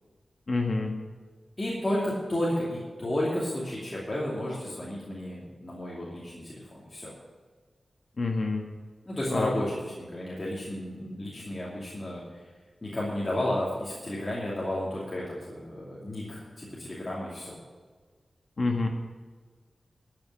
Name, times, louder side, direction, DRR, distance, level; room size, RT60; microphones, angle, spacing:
voice 1, 0.5-0.9 8.2-8.6 9.3-9.5 18.6-18.9, left 3 dB, 50° left, 2 dB, 1.6 m, -27 dB
voice 2, 1.6-7.1 9.1-12.4 12.8-17.6, left 1 dB, 25° left, -7 dB, 2.8 m, -32 dB
13.5 x 6.2 x 8.6 m, 1.5 s
wide cardioid pair, 115°, 0 cm